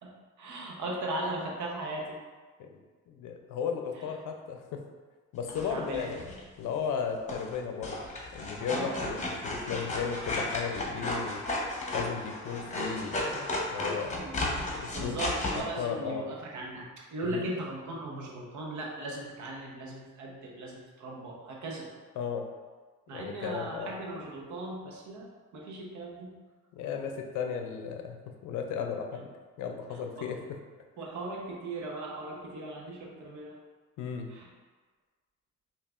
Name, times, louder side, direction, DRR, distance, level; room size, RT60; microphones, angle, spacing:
voice 1, 0.0-2.2 5.5-6.1 8.7-9.0 14.2-14.5 14.9-21.9 23.1-26.4 30.2-30.3 31.0-33.6 34.3-34.5, right 2 dB, 70° right, -2 dB, 0.9 m, -38 dB
voice 2, 2.6-4.8 5.3-6.3 6.6-8.0 8.3-9.2 9.4-11.4 11.9-14.3 14.8-15.2 15.5-16.3 17.2-17.4 22.2-22.5 23.1-23.9 26.7-29.3 29.6-30.6 34.0-34.3, left 6 dB, 85° left, 4 dB, 0.5 m, -35 dB
scissors cutting cardboard, 5.5-6.4 7.3-7.6 7.8-15.6, left 2 dB, 25° left, 0.8 m, -34 dB
5.4 x 2.4 x 2.4 m, 1.4 s
cardioid pair, 90°, 30 cm